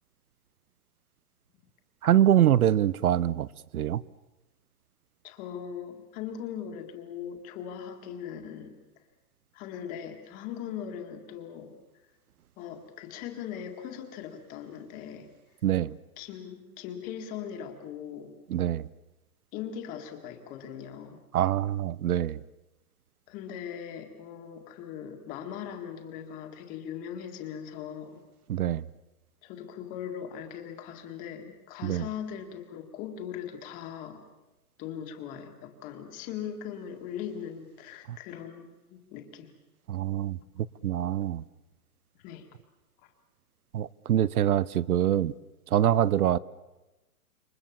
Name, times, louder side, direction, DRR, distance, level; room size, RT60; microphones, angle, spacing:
voice 1, 2.0-3.5 3.7-4.0 15.6-16.0 18.5-18.9 21.3-22.4 28.5-28.9 31.8-32.0 38.1-38.2 39.9-41.4 43.7-45.3 45.7-46.4, right 11 dB, 75° right, 0.8 m, -24 dB
voice 2, 5.2-8.7 9.5-11.7 12.6-15.3 16.2-18.3 19.5-21.2 23.3-28.2 29.4-34.2 34.8-39.5 42.2-42.5 43.0-43.1, left 8 dB, 20° left, 1.8 m, -40 dB
28.0 x 24.0 x 7.3 m
hypercardioid pair, 170°, 44 cm